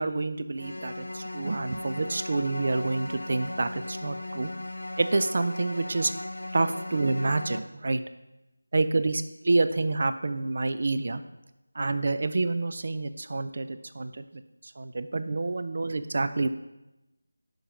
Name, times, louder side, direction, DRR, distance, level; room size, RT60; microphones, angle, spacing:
voice 1, 0.0-4.5 5.0-6.1 6.5-8.0 8.7-9.2 9.5-11.2 11.8-14.2 14.8-16.5, right 3 dB, 50° right, 11 dB, 0.4 m, -28 dB
sound 1, 0.6-7.6, left 1 dB, 85° left, 0.5 m, -37 dB
5.6 x 5.5 x 5.0 m, 0.97 s
figure-of-eight pair, 170°, 0 cm